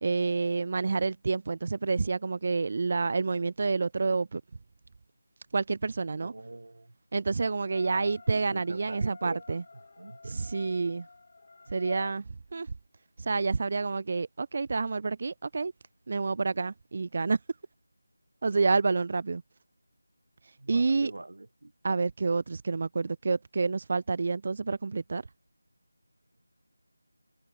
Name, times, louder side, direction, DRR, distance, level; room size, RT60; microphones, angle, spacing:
voice 1, 0.0-4.4 5.5-6.3 7.1-9.6 10.2-11.1 11.7-12.2 12.5-12.7 13.2-15.7 16.1-17.4 18.4-19.4 20.7-21.1 21.8-25.2, right 4 dB, 30° right, 0.6 m, -28 dB
voice 2, 6.2-6.9 7.8-9.6 10.0-10.3 20.6-21.7, right 2 dB, 70° right, 3.1 m, -43 dB
sound 1, 7.6-12.1, left 3 dB, 40° left, 1.6 m, -48 dB
figure-of-eight pair, 175°, 0 cm